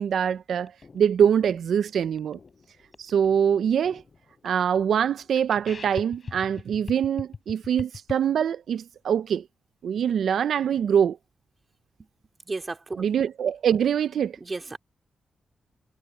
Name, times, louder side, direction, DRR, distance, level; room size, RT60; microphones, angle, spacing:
voice 1, 0.0-2.4 3.0-4.0 4.4-9.5 9.8-11.2 13.0-14.4, right 8 dB, 80° right, 0.4 m, -24 dB
sound 1, 0.7-8.1, left 4 dB, 35° left, 5.7 m, -43 dB
voice 2, 12.5-13.0 14.4-14.8, right 3 dB, 25° right, 2.6 m, -33 dB
wide cardioid pair, 140°, 0 cm